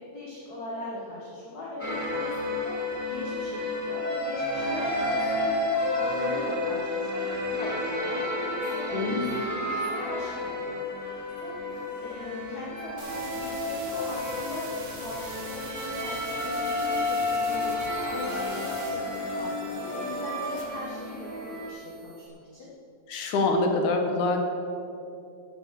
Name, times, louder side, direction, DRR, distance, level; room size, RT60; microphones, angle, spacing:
voice 1, 0.1-9.2 9.6-11.6 12.0-17.7 18.1-22.7 23.2-23.3, left 2 dB, 40° left, -5 dB, 1.8 m, -40 dB
sound 1, 1.8-21.7, left 2 dB, 5° right, 1.8 m, -31 dB
voice 2, 8.9-9.3 23.1-24.4, left 2 dB, 80° left, 3 dB, 2.9 m, -25 dB
sound 2, 13.0-22.3, right 3 dB, 70° right, 3.3 m, -44 dB
13.0 x 8.1 x 7.6 m, 2.7 s
omnidirectional pair, 3.4 m